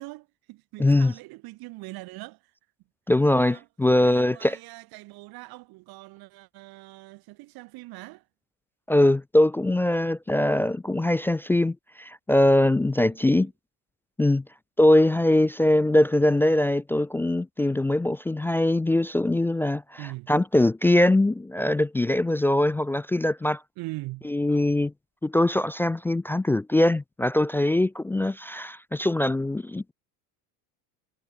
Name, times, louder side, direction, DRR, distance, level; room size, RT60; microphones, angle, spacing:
voice 1, 0.0-2.5 3.4-3.7 4.0-8.3 13.1-13.5 20.0-20.3 23.8-24.3, right 21 dB, 55° right, 2.4 m, -42 dB
voice 2, 0.8-1.1 3.1-4.6 8.9-13.5 14.2-14.4 14.8-23.6 24.3-24.9 25.2-29.9, left 1 dB, 5° left, 0.3 m, -22 dB
supercardioid pair, 135°, 44 cm